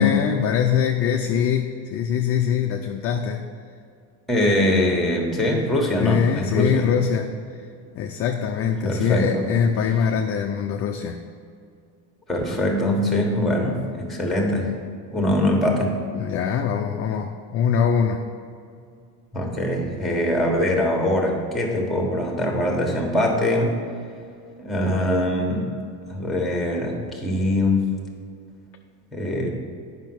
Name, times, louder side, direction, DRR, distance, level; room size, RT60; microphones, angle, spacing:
voice 1, 0.0-3.4 6.0-7.3 8.0-11.2 16.1-18.2, left 7 dB, 35° left, 4 dB, 0.4 m, -23 dB
voice 2, 4.3-6.9 8.8-9.4 12.3-14.7 15.1-16.0 19.3-23.8 24.6-25.7 26.1-27.8 29.1-29.5, left 1 dB, ahead, 1 dB, 1.5 m, -22 dB
8.9 x 5.6 x 6.1 m, 2.4 s
cardioid pair, 140°, 45 cm